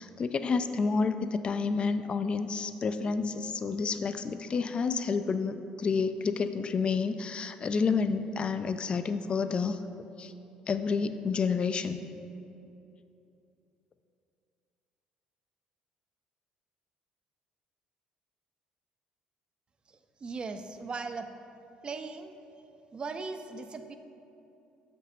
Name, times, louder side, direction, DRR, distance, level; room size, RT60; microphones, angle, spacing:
voice 1, 0.0-9.8 10.2-10.3 10.7-12.0, left 5 dB, 35° left, 10 dB, 0.4 m, -29 dB
voice 2, 19.9-21.3 21.8-22.4 22.9-24.0, right 4 dB, 35° right, 8 dB, 0.5 m, -38 dB
6.5 x 5.3 x 4.2 m, 2.8 s
supercardioid pair, 85°, 3 cm